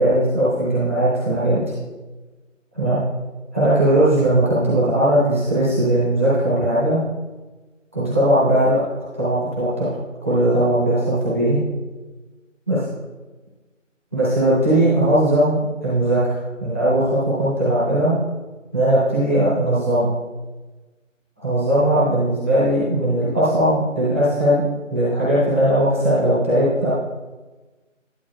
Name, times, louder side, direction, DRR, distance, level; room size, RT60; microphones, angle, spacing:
voice 1, 0.0-1.6 2.7-3.0 3.5-7.0 7.9-8.8 9.1-9.9 10.2-11.6 12.7-12.8 14.1-16.3 16.6-18.2 18.7-20.1 21.4-24.6 24.9-26.9, right 1 dB, 10° right, -12 dB, 1.0 m, -18 dB
11.0 x 7.4 x 2.3 m, 1.2 s
figure-of-eight pair, 165°, 39 cm